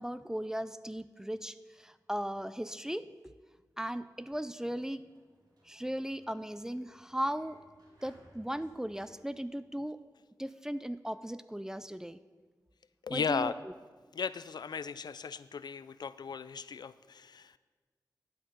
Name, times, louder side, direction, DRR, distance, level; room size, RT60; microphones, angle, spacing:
voice 1, 0.0-3.1 3.8-5.1 5.6-7.6 8.0-10.0 10.4-12.2 13.1-13.7, equal, 5° right, 13 dB, 0.4 m, -37 dB
Sliding door, 4.6-10.2, right 1 dB, 70° right, 2.6 m, -65 dB
voice 2, 13.0-13.5 14.1-17.6, left 6 dB, 75° left, 14 dB, 0.4 m, -36 dB
11.5 x 8.7 x 5.2 m, 1.4 s
wide cardioid pair, 85°, 7 cm